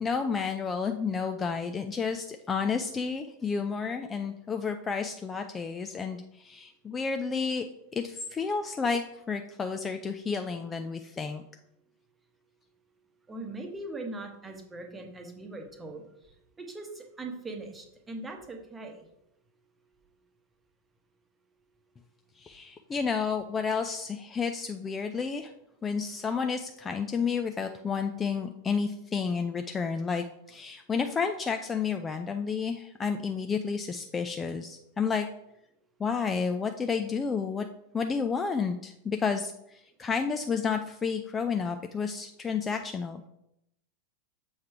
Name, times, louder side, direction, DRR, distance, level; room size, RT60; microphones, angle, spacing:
voice 1, 0.0-7.6 7.9-11.4 22.4-25.5 25.8-35.3 36.0-37.7 37.9-43.2, left 5 dB, 20° left, 6 dB, 0.3 m, -31 dB
voice 2, 13.3-16.0 16.6-19.1, right 2 dB, 15° right, 3 dB, 1.0 m, -40 dB
6.9 x 3.2 x 4.6 m, 0.81 s
figure-of-eight pair, 90°, 0 cm